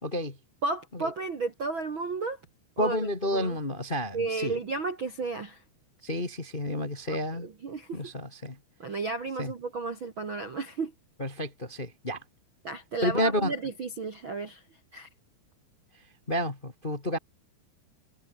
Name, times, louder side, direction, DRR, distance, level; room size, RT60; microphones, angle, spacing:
voice 1, 0.0-0.4 2.8-4.5 6.0-7.5 7.9-8.6 9.4-9.5 11.2-12.2 13.0-13.5 16.3-17.2, equal, 35° left, 0.8 m, -30 dB
voice 2, 0.6-2.4 2.8-3.6 4.1-5.6 7.1-8.0 8.8-10.9 12.6-14.6 14.9-15.1, right 3 dB, 50° right, 1.5 m, -33 dB
omnidirectional pair, 5.2 m